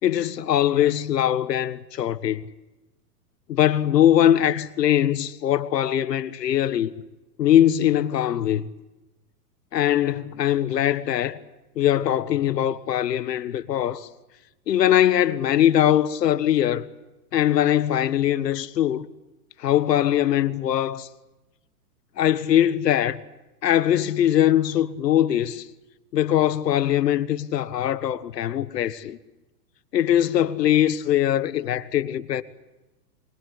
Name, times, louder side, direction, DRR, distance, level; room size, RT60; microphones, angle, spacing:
voice 1, 0.0-2.4 3.5-6.9 7.4-8.7 9.7-11.4 11.8-14.1 14.7-16.9 17.3-19.1 19.6-21.1 22.2-23.2 23.6-25.6 26.1-29.2 29.9-32.4, left 11 dB, 80° left, 1.6 m, -21 dB
25.0 x 22.0 x 8.5 m
hypercardioid pair, 125°, 48 cm